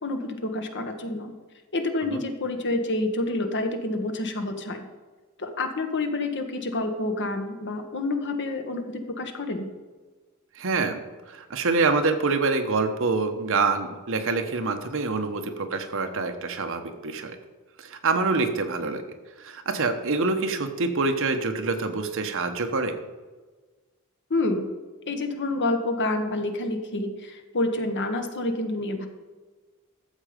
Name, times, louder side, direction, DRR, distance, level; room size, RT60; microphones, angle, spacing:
voice 1, 0.0-1.3 1.7-4.8 5.4-9.7 24.3-24.7 25.1-29.1, left 2 dB, 55° left, 6 dB, 1.3 m, -28 dB
voice 2, 10.6-11.0 11.3-17.4 17.8-19.0 19.4-22.9, right 3 dB, 65° right, 7 dB, 1.1 m, -26 dB
12.5 x 7.5 x 5.1 m, 1.3 s
head